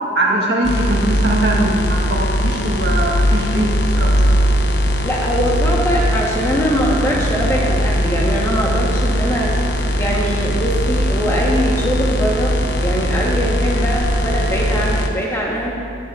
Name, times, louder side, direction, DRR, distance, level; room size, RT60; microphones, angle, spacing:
voice 1, 0.2-4.4, right 1 dB, 65° right, -2 dB, 1.7 m, -21 dB
sound 1, 0.6-15.1, equal, 75° left, 0.9 m, -19 dB
voice 2, 5.0-9.5 10.0-12.5 12.8-15.7, equal, 15° left, -4 dB, 1.6 m, -21 dB
16.0 x 11.0 x 2.8 m, 2.6 s
head